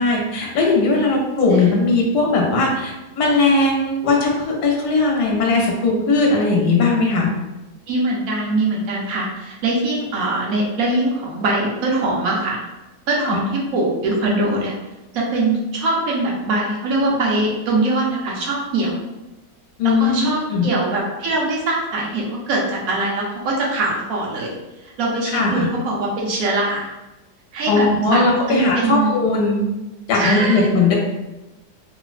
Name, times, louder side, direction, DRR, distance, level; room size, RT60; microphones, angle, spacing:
voice 1, 0.0-7.3 13.2-13.4 19.8-20.7 25.3-25.7 27.7-29.7 30.1-30.9, left 3 dB, 70° left, -1 dB, 1.2 m, -18 dB
voice 2, 7.9-12.6 13.1-14.7 15.1-18.9 19.8-24.5 24.8-26.9 27.5-29.1 30.1-30.7, right 2 dB, 70° right, -2 dB, 0.9 m, -22 dB
3.2 x 2.1 x 2.4 m, 1.0 s
omnidirectional pair, 1.8 m